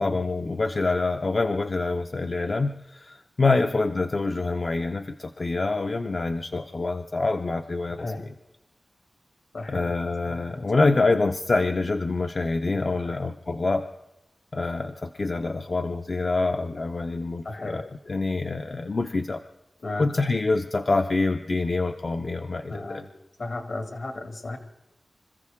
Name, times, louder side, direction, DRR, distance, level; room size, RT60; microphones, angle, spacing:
voice 1, 0.0-8.3 9.7-13.9 14.5-19.4 20.0-23.0, left 3 dB, 45° left, 5 dB, 0.6 m, -26 dB
voice 2, 9.5-10.0 10.2-11.0 12.7-13.2 17.4-17.8 19.8-20.3 22.7-23.1 23.4-24.6, left 2 dB, 65° left, 5 dB, 2.0 m, -35 dB
26.0 x 14.5 x 3.6 m, 0.88 s
wide cardioid pair, 100°, 0 cm